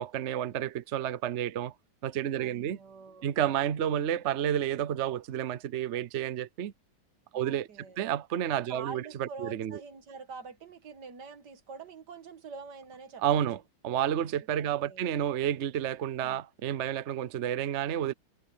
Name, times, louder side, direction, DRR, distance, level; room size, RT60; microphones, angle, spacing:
voice 1, 0.0-1.7 2.0-2.8 3.2-6.7 7.3-7.7 8.0-9.8 13.2-13.6 13.8-18.1, right 10 dB, 75° right, 0.6 m, -30 dB
voice 2, 2.4-3.3 7.3-8.0 8.6-13.2 14.6-15.1 16.1-16.4, right 5 dB, 55° right, 2.0 m, -46 dB
omnidirectional pair, 2.2 m